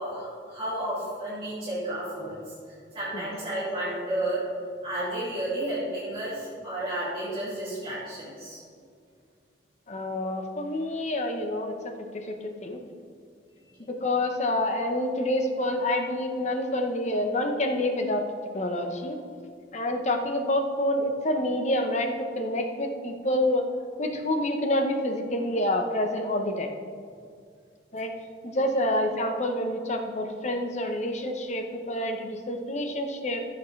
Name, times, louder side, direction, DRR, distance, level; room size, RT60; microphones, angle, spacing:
voice 1, 0.0-4.4 4.8-8.6, right 1 dB, 30° right, -11 dB, 2.8 m, -32 dB
voice 2, 9.9-11.7 12.1-12.8 13.9-18.2 18.5-19.2 19.7-23.6 24.0-26.7 27.9-28.1 28.4-33.5, left 1 dB, 40° left, 5 dB, 0.9 m, -27 dB
14.5 x 7.1 x 3.3 m, 2.2 s
head